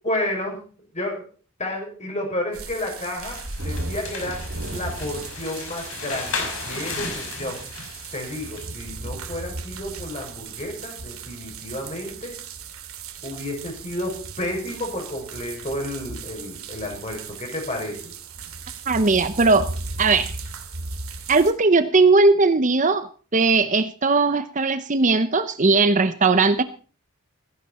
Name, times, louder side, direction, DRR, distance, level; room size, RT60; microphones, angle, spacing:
voice 1, 0.0-0.6 0.9-1.2 1.6-4.4 4.7-12.3 13.2-18.1, left 1 dB, 30° left, 2 dB, 6.3 m, -31 dB
sound 1, 2.5-21.5, right 3 dB, 70° right, 2.4 m, -36 dB
sound 2, 3.2-8.7, left 4 dB, 60° left, 5.6 m, -35 dB
voice 2, 18.9-19.7 20.0-20.3 21.3-26.6, right 3 dB, 35° right, 11 dB, 0.7 m, -18 dB
16.0 x 15.0 x 4.3 m, 0.41 s
head